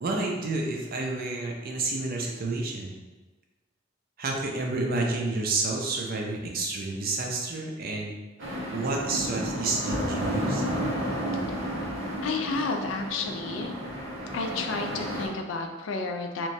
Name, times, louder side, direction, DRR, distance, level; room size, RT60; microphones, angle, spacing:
voice 1, 0.0-3.0 4.2-8.1 8.7-10.6, right 2 dB, 50° right, 0 dB, 0.5 m, -30 dB
sound 1, 8.4-15.3, equal, 90° right, 0.7 m, -32 dB
voice 2, 12.2-13.7 14.3-16.5, left 3 dB, 80° left, 4 dB, 0.4 m, -31 dB
2.9 x 2.2 x 2.6 m, 1.2 s
head